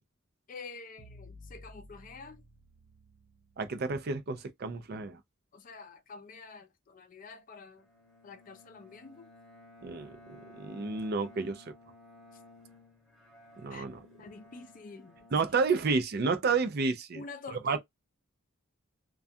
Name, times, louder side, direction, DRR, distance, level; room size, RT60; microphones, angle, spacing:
voice 1, 0.5-2.4 5.5-7.9 8.2-9.3 13.7-13.9 14.2-15.3 17.1-17.8, left 4 dB, 40° left, 0.4 m, -47 dB
sound 1, 1.0-4.1, left 1 dB, 85° right, 0.7 m, -54 dB
voice 2, 3.6-5.2 9.8-11.6 13.6-14.0 15.3-17.2 17.6-17.8, right 4 dB, 50° right, 0.4 m, -30 dB
Bowed string instrument, 7.8-16.2, left 2 dB, ahead, 0.9 m, -56 dB
2.3 x 2.3 x 2.5 m
head